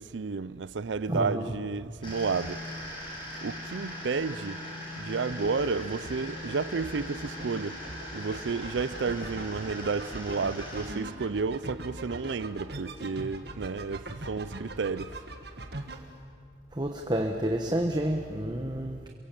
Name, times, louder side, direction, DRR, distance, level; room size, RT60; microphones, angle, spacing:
voice 1, 0.0-2.6 3.4-4.6 5.0-7.8 8.1-15.2, right 4 dB, 75° right, 0.5 m, -31 dB
voice 2, 1.1-1.5 16.7-19.1, right 1 dB, 20° right, 1.2 m, -29 dB
sound 1, 2.0-10.9, left 1 dB, 25° left, 6.5 m, -40 dB
sound 2, 5.3-16.0, right 2 dB, 60° right, 1.8 m, -41 dB
28.0 x 23.5 x 7.6 m
head